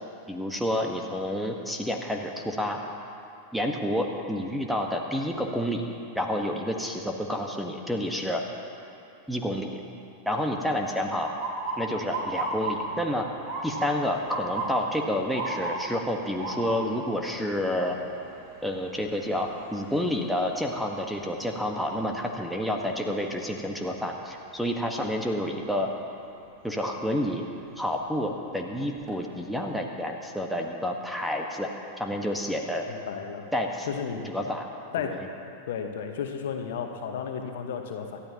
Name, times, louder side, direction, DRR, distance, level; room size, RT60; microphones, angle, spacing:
voice 1, 0.3-2.8 3.5-5.8 6.1-8.4 9.3-9.8 10.2-11.3 11.8-13.3 13.6-18.0 18.6-25.9 26.6-27.4 27.8-31.7 32.0-32.9 33.5-33.9 34.2-34.7 35.0-35.2, left 1 dB, ahead, 2 dB, 1.4 m, -29 dB
Motor vehicle (road) / Siren, 11.4-23.3 23.7-24.2 25.0-25.3 27.1-27.4 27.9-28.0 28.4-29.1, right 2 dB, 40° right, 3.4 m, -36 dB
voice 2, 32.9-33.5 33.9-34.3 34.9-35.2 35.7-38.2, left 7 dB, 55° left, 4 dB, 1.3 m, -33 dB
27.0 x 13.0 x 2.9 m, 2.7 s
figure-of-eight pair, 90°, 0 cm